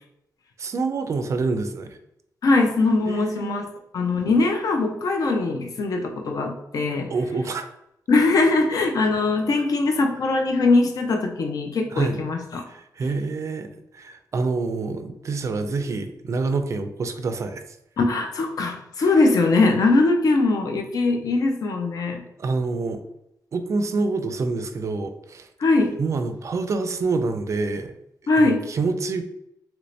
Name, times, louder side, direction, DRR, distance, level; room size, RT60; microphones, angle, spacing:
voice 1, 0.6-2.0 3.1-3.7 7.1-7.7 11.9-12.2 12.7-13.7 13.9-17.6 19.0-19.1 22.4-23.0 23.5-25.5 26.0-27.9 28.4-29.2, right 3 dB, 45° right, 8 dB, 0.4 m, -27 dB
voice 2, 2.4-3.7 3.9-7.1 8.1-12.6 18.0-22.2 25.6-26.0 28.3-28.6, left 3 dB, 55° left, 3 dB, 0.5 m, -21 dB
2.9 x 2.7 x 3.2 m, 0.81 s
wide cardioid pair, 135°, 7 cm